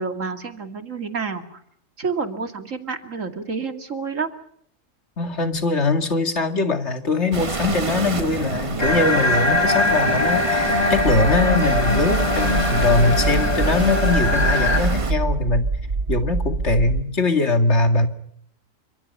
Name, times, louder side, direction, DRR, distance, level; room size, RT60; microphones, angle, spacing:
voice 1, 0.0-1.6 2.0-4.3, right 5 dB, 80° right, 6 dB, 2.9 m, -29 dB
voice 2, 5.2-15.6 16.1-18.1, left 3 dB, 60° left, 7 dB, 2.5 m, -22 dB
sound 1, 7.3-15.1, right 3 dB, 25° right, 1.2 m, -28 dB
sound 2, 8.8-14.8, left 2 dB, 30° left, 6.0 m, -22 dB
sound 3, 11.0-17.0, right 3 dB, 50° right, 1.5 m, -25 dB
30.0 x 26.0 x 5.6 m, 0.68 s
omnidirectional pair, 1.3 m